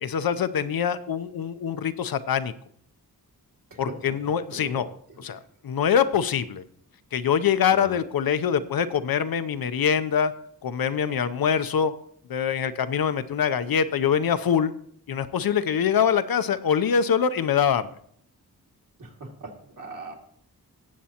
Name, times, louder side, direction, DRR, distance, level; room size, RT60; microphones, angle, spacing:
voice 1, 0.0-2.5 3.8-4.9 5.2-6.6 7.1-10.3 10.6-11.9 12.3-14.7 15.1-17.9, left 7 dB, 70° left, 12 dB, 0.6 m, -24 dB
voice 2, 4.5-4.8 7.7-7.9 19.0-20.1, right 2 dB, 55° right, 0 dB, 2.4 m, -40 dB
18.5 x 7.5 x 2.9 m, 0.64 s
wide cardioid pair, 135°, 37 cm